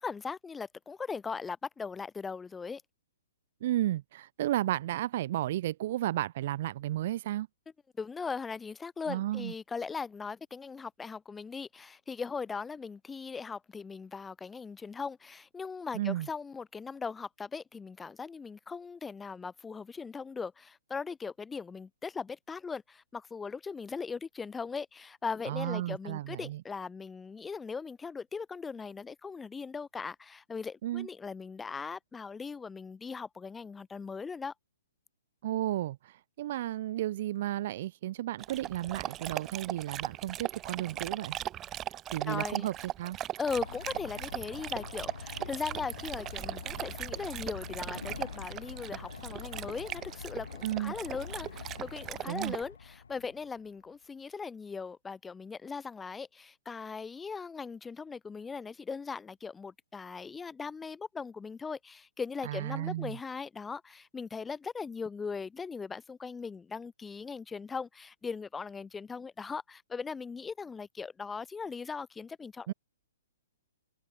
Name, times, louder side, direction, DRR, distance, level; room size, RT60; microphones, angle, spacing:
voice 1, 0.0-2.8 8.0-34.5 42.3-42.7 43.4-72.7, left 5 dB, 10° left, 2.1 m, -39 dB
voice 2, 3.6-7.5 9.1-9.5 15.9-16.3 25.5-26.6 30.8-31.1 35.4-36.0 36.4-41.4 42.1-43.2 50.6-50.9 52.3-52.6 62.5-63.2 72.7-72.8, right 14 dB, 50° right, 0.4 m, -33 dB
Dog, 38.4-52.6, right 12 dB, 25° right, 1.9 m, -39 dB
sound 1, 43.5-53.7, left 5 dB, 75° left, 1.9 m, -45 dB
hypercardioid pair, 125°, 0 cm